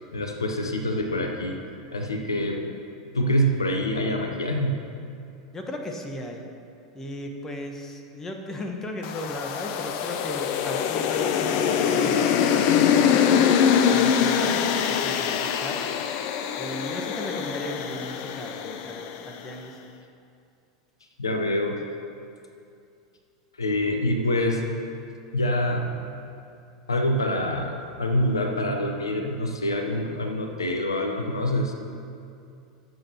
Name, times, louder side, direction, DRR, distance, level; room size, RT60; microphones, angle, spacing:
voice 1, 0.1-1.6 1.9-2.7 3.1-4.8 21.2-21.8 23.6-24.7 25.3-25.9 26.9-31.7, left 1 dB, 80° left, 4 dB, 0.8 m, -25 dB
voice 2, 5.5-6.4 6.9-13.4 13.9-15.9 16.6-19.8, left 1 dB, 20° left, 3 dB, 1.2 m, -36 dB
sound 1, 9.0-19.4, left 8 dB, 45° left, 0.6 m, -23 dB
18.5 x 7.7 x 2.9 m, 2.5 s
figure-of-eight pair, 85°, 2 cm